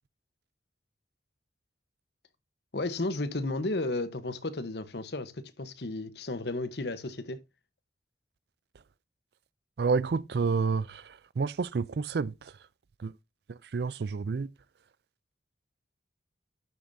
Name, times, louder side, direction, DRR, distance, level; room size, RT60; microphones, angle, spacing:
voice 1, 2.7-7.4, left 2 dB, 65° left, 1.0 m, -33 dB
voice 2, 9.8-11.0 11.4-12.3 13.0-13.1 13.5-14.5, right 4 dB, 60° right, 0.4 m, -29 dB
12.0 x 7.1 x 2.7 m
head